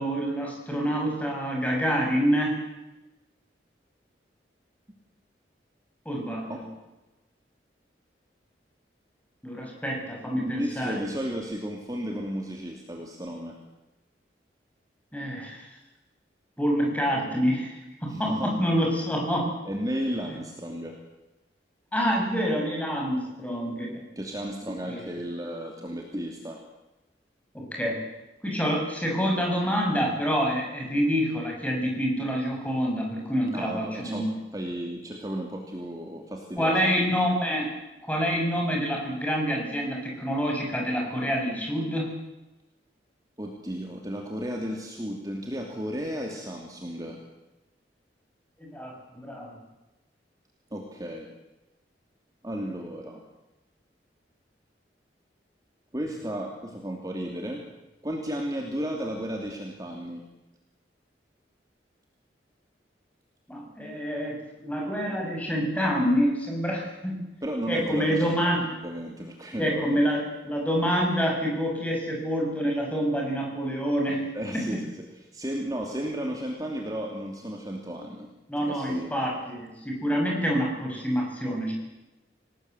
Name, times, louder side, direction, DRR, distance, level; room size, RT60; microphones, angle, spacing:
voice 1, 0.0-2.6 6.0-6.6 9.4-11.0 15.1-15.7 16.6-19.5 20.3-20.4 21.9-24.0 24.9-25.0 27.5-28.0 28.4-34.2 36.6-37.7 38.0-42.1 48.6-49.6 63.5-67.2 67.7-68.6 69.6-74.3 74.5-74.8 78.5-81.7, equal, 10° left, 0 dB, 6.6 m, -27 dB
voice 2, 10.3-13.6 18.1-18.5 19.6-21.0 24.2-26.6 33.5-34.3 34.5-36.8 43.4-47.2 50.7-51.3 52.4-53.2 55.9-57.6 58.0-60.2 67.4-69.9 74.3-78.3 78.6-79.1, equal, 20° right, 1 dB, 2.8 m, -34 dB
27.5 x 19.0 x 8.0 m, 1.0 s
head